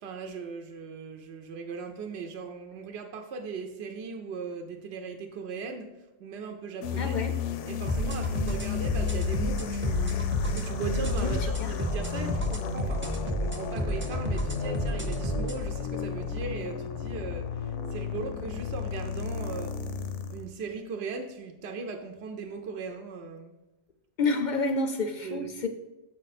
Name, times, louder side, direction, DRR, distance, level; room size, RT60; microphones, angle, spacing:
voice 1, 0.0-5.9 6.2-7.2 7.7-10.2 10.5-19.8 20.3-23.5 25.2-25.7, right 4 dB, 65° right, 4 dB, 0.8 m, -38 dB
sound 1, 6.8-20.5, left 7 dB, 80° left, 0.9 m, -33 dB
voice 2, 7.0-7.3 11.2-11.7 24.2-25.7, left 3 dB, 55° left, 6 dB, 0.5 m, -29 dB
sound 2, 7.9-15.6, right 1 dB, 20° right, 0.3 m, -31 dB
7.4 x 4.9 x 4.1 m, 1.0 s
omnidirectional pair, 1.2 m